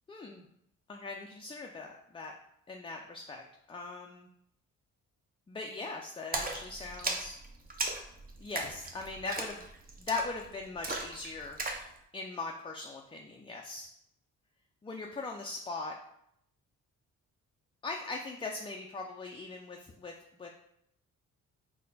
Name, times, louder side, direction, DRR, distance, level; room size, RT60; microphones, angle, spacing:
voice 1, 0.1-0.4 0.9-2.3 2.7-3.4 3.7-4.3 5.5-7.4 8.4-9.7 10.0-11.6 12.1-13.9 14.8-15.9 17.8-20.1 20.4-20.5, left 3 dB, 15° left, 1 dB, 0.4 m, -40 dB
Splash splatter, 6.3-11.9, right 2 dB, 30° right, 0.7 m, -37 dB
4.1 x 2.2 x 4.0 m, 0.75 s
cardioid pair, 80°, 32 cm